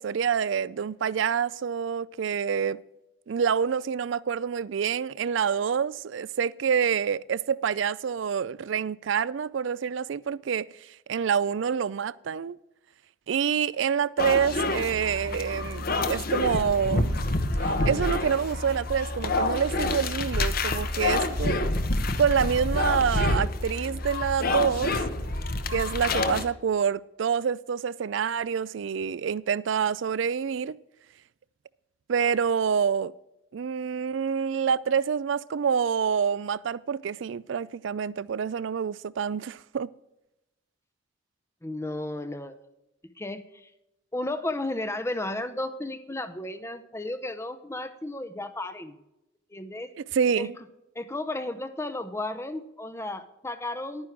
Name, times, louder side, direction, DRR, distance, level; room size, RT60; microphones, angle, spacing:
voice 1, 0.0-2.8 3.3-10.7 11.1-12.6 13.3-17.1 17.6-21.6 22.2-25.0 25.7-30.8 32.1-33.1 33.5-39.9 50.0-50.6, right 7 dB, 65° right, 0.4 m, -27 dB
sound 1, 14.2-26.4, left 2 dB, 50° left, 1.0 m, -27 dB
voice 2, 41.6-42.6 43.2-43.7 44.1-49.0 49.5-49.9 50.4-50.5 51.0-54.1, left 2 dB, 15° left, 0.7 m, -33 dB
11.0 x 9.7 x 4.6 m
head